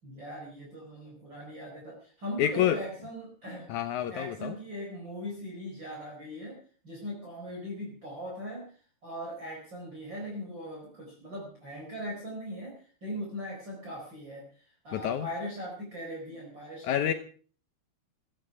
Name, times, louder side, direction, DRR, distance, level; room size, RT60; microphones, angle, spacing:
voice 1, 0.0-3.7 4.1-6.6 6.8-17.1, equal, 30° right, -2 dB, 4.8 m, -40 dB
voice 2, 2.4-2.8 3.7-4.6 14.9-15.3 16.8-17.1, left 10 dB, 80° left, 8 dB, 1.7 m, -28 dB
16.5 x 15.0 x 4.9 m, 0.42 s
omnidirectional pair, 4.7 m